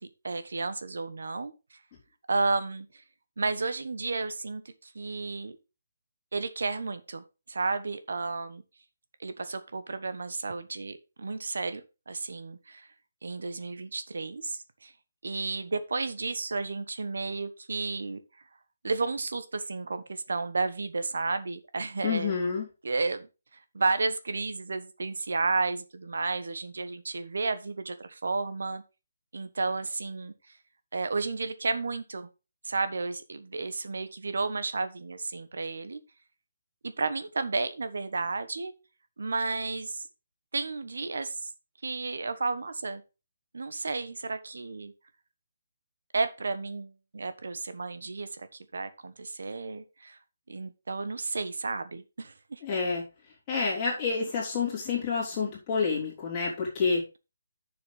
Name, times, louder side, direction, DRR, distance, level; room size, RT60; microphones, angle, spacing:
voice 1, 0.2-1.5 2.3-2.9 3.4-5.5 6.3-8.6 9.2-12.9 13.2-14.9 15.2-18.2 18.8-22.3 22.8-23.3 23.7-28.8 29.3-30.3 30.9-32.3 32.6-36.0 36.8-38.7 39.2-40.1 40.5-41.5 41.8-43.0 43.5-44.9 46.1-50.2 50.5-52.6, right 3 dB, 70° right, 11 dB, 1.2 m, -32 dB
voice 2, 22.0-22.7 52.6-53.0 53.5-57.0, left 5 dB, 15° left, -5 dB, 3.5 m, -28 dB
11.0 x 6.8 x 3.4 m, 0.29 s
hypercardioid pair, 175°, 0 cm